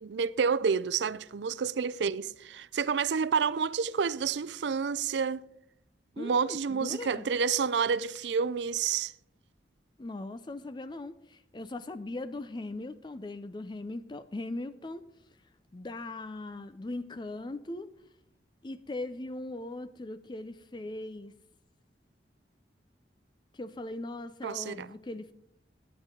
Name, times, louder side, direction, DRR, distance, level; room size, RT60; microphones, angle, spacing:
voice 1, 0.0-5.4 6.2-9.1 24.4-24.9, right 6 dB, 80° right, 0.4 m, -29 dB
voice 2, 6.2-7.3 10.0-15.1 15.7-17.9 18.6-21.3 23.5-25.3, left 2 dB, 25° left, 0.4 m, -39 dB
10.5 x 9.9 x 5.1 m
head